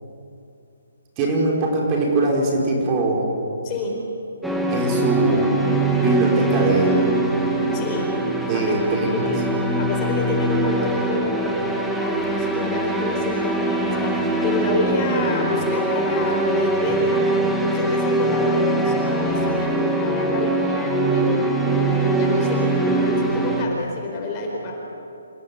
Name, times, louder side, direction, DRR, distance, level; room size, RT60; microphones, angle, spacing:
voice 1, 1.2-3.3 4.7-5.6 6.0-6.9 8.5-9.3, right 2 dB, 20° right, -1 dB, 5.1 m, -22 dB
sound 1, 4.4-23.6, right 2 dB, ahead, 1.8 m, -22 dB
voice 2, 7.7-8.1 8.5-8.8 9.2-9.4 9.8-17.2 17.6-24.7, left 3 dB, 20° left, 0 dB, 4.7 m, -28 dB
28.0 x 16.5 x 9.8 m, 2.7 s
hypercardioid pair, 160°, 0 cm